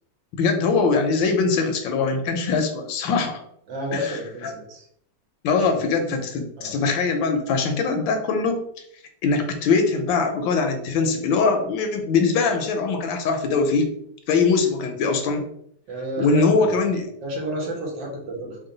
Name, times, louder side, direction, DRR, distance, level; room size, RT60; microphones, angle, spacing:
voice 1, 0.4-3.4 3.9-4.2 4.4-4.5 5.4-8.6 9.2-13.9 14.3-15.5 16.2-17.1, left 4 dB, 75° left, 5 dB, 1.3 m, -22 dB
voice 2, 3.7-4.9 5.5-5.7 6.6-6.9 15.9-16.7 17.2-18.6, right 1 dB, 70° right, -1 dB, 1.7 m, -31 dB
3.7 x 2.2 x 3.8 m, 0.70 s
omnidirectional pair, 2.1 m